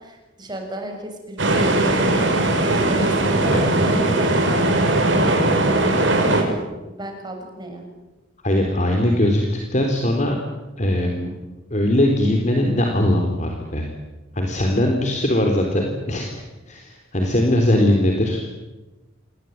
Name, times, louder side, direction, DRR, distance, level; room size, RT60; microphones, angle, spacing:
voice 1, 0.0-2.4 3.0-7.8, right 1 dB, 20° right, 3 dB, 6.7 m, -35 dB
sound 1, 1.4-6.4, right 2 dB, 75° right, 6.7 m, -19 dB
voice 2, 8.4-10.4 10.8-11.3 11.7-13.9 14.3-18.4, left 1 dB, 40° left, 2 dB, 3.8 m, -20 dB
27.5 x 22.0 x 9.5 m, 1.1 s
head